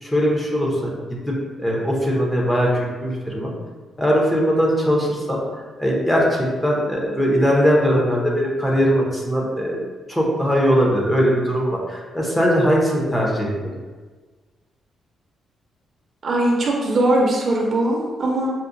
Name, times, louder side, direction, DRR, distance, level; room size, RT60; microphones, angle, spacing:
voice 1, 0.0-3.5 4.0-5.4 5.8-9.8 10.1-13.7, equal, 5° left, -3 dB, 0.7 m, -20 dB
voice 2, 16.2-18.5, right 1 dB, 45° right, -2 dB, 0.6 m, -20 dB
5.7 x 2.1 x 2.6 m, 1.4 s
cardioid pair, 140°, 0 cm